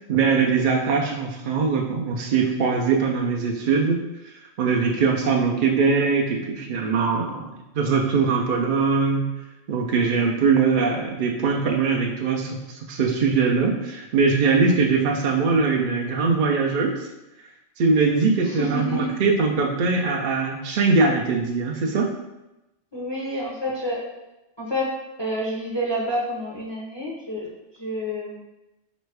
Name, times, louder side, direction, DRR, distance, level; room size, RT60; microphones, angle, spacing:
voice 1, 0.1-4.0 4.6-7.5 7.7-9.3 9.7-17.1 17.8-22.1, right 4 dB, 65° right, 1 dB, 0.5 m, -21 dB
voice 2, 18.4-19.1 22.9-24.0 24.6-24.9 25.2-27.5 27.8-28.4, equal, 30° left, -5 dB, 0.5 m, -28 dB
4.2 x 3.1 x 3.2 m, 0.96 s
omnidirectional pair, 1.3 m